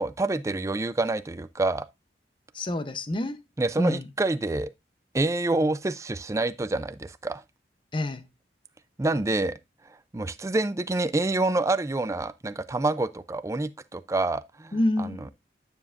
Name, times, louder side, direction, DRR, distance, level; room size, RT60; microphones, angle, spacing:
voice 1, 0.0-1.9 3.6-4.7 5.1-7.4 9.0-9.6 10.1-15.1, right 2 dB, 15° right, 0.4 m, -27 dB
voice 2, 2.5-3.4 3.8-4.1 7.9-8.3 14.7-15.3, left 1 dB, 30° left, 0.7 m, -27 dB
9.6 x 7.1 x 2.4 m
head